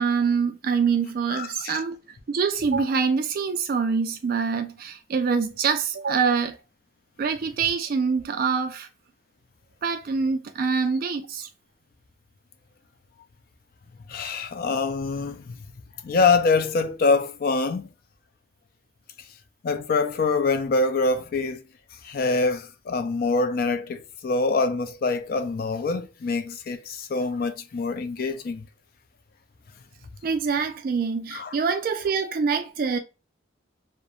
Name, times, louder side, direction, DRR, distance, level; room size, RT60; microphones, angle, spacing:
voice 1, 0.0-2.0 2.3-6.6 7.2-8.9 9.8-11.5 30.2-33.0, right 5 dB, 50° right, 0.3 m, -25 dB
voice 2, 1.3-1.7 14.1-15.6 16.0-17.9 19.6-21.6 22.0-28.6 31.3-31.5, left 3 dB, 50° left, 0.3 m, -25 dB
2.9 x 2.0 x 2.3 m
head